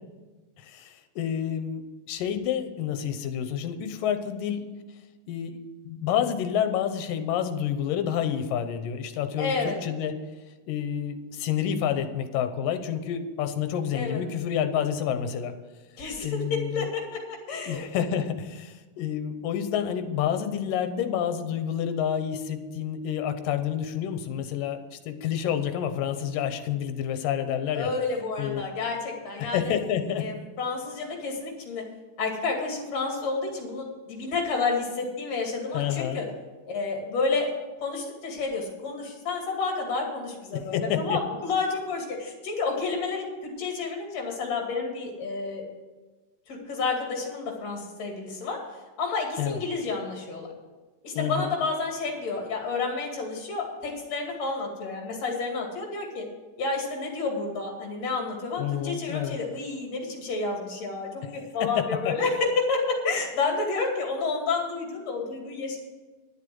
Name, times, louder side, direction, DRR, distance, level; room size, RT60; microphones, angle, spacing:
voice 1, 0.6-4.6 5.3-5.6 5.8-10.1 10.7-15.6 16.2-16.9 17.7-27.9 28.4-28.6 29.4-30.3 35.7-36.2 40.5-41.2 49.4-49.6 51.2-51.5 58.6-59.4 61.2-62.1, left 9 dB, 80° left, 8 dB, 2.5 m, -29 dB
voice 2, 9.4-9.8 13.9-14.2 16.0-17.2 17.5-17.8 27.7-29.7 30.2-31.8 32.2-36.3 36.7-37.5 37.8-45.6 46.5-48.6 49.0-50.5 51.0-56.2 56.6-65.8, left 4 dB, 55° left, 1 dB, 3.4 m, -30 dB
11.5 x 7.4 x 7.7 m, 1.3 s
omnidirectional pair, 3.9 m